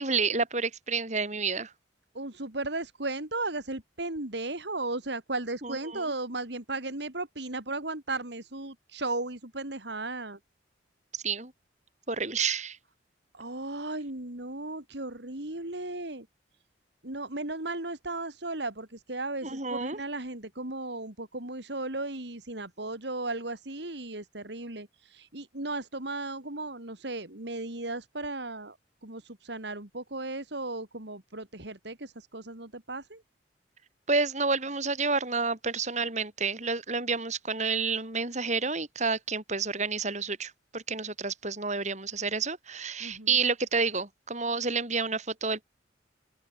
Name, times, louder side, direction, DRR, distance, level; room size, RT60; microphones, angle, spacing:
voice 1, 0.0-1.7 5.6-6.1 11.2-11.5 12.1-12.8 19.4-20.0 34.1-45.6, right 4 dB, 40° right, 5.0 m, -29 dB
voice 2, 2.1-10.4 13.3-16.3 17.0-28.8 29.0-33.2 43.0-43.3, right 2 dB, 65° right, 3.1 m, -35 dB
open air
head